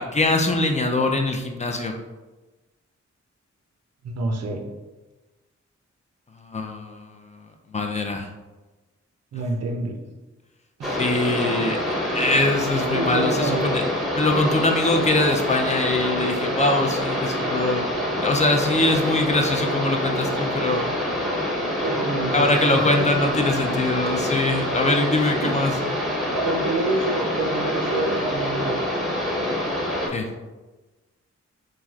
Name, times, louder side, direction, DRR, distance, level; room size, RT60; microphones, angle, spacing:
voice 1, 0.0-1.9 6.5-7.1 7.7-8.3 11.0-11.8 12.1-13.8 14.2-17.8 18.2-20.9 22.3-25.7 30.1-30.3, left 2 dB, 25° left, 3 dB, 0.4 m, -22 dB
voice 2, 4.0-4.6 9.3-10.0 12.9-13.8 14.3-14.4 21.8-23.1 25.4-25.6 26.3-28.9, right 2 dB, 60° right, 3 dB, 0.5 m, -27 dB
sound 1, 10.8-30.1, left 1 dB, ahead, 0.7 m, -26 dB
3.1 x 2.4 x 2.3 m, 1.2 s
cardioid pair, 50°, 29 cm